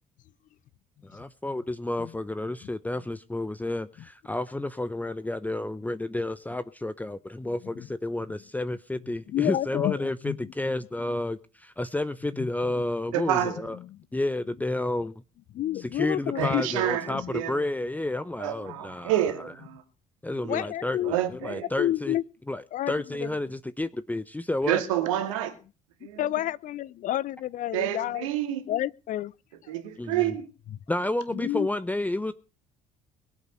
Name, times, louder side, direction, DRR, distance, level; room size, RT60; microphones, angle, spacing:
voice 1, 1.0-13.8 14.1-15.1 15.7-19.2 20.2-22.2 22.5-24.8 30.0-30.3 30.9-32.3, left 2 dB, 10° left, 0.9 m, -31 dB
voice 2, 9.3-10.5 12.4-12.5 15.5-16.6 17.1-17.5 18.7-18.8 20.5-22.2 22.7-23.3 26.2-28.3 28.7-29.3 29.7-29.8 31.3-31.7, left 13 dB, 50° left, 0.7 m, -30 dB
voice 3, 13.1-13.6 16.3-17.6 18.4-19.8 20.4-20.7 21.0-21.7 24.7-25.6 26.0-26.2 27.7-28.6 29.7-30.5, right 12 dB, 75° right, 2.4 m, -28 dB
22.0 x 8.2 x 5.6 m
hypercardioid pair, 55°, 17 cm